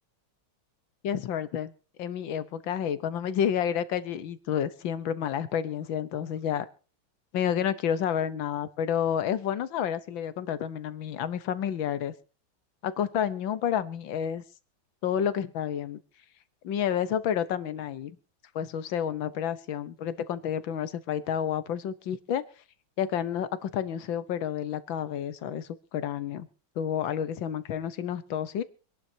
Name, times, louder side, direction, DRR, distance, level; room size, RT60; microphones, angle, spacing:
voice 1, 1.0-1.7 2.0-6.7 7.3-12.1 12.8-14.4 15.0-16.0 16.6-18.1 18.5-22.4 23.0-26.5 26.8-28.6, left 9 dB, 70° left, 14 dB, 1.7 m, -30 dB
25.5 x 11.5 x 2.8 m, 0.35 s
omnidirectional pair, 2.2 m